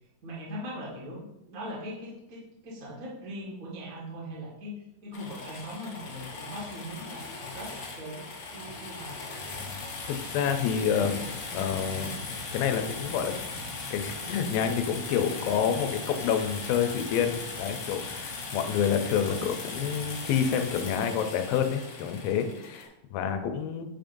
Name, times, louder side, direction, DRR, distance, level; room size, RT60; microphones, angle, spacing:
voice 1, 0.2-8.3 8.5-9.2, equal, 40° right, -4 dB, 1.4 m, -40 dB
sound 1, 5.1-22.9, left 3 dB, 65° left, 1.5 m, -38 dB
voice 2, 10.1-11.3 11.5-12.1 12.5-13.5 13.9-23.9, left 8 dB, 90° left, 6 dB, 2.5 m, -28 dB
9.4 x 5.2 x 2.6 m, 0.92 s
omnidirectional pair, 4.1 m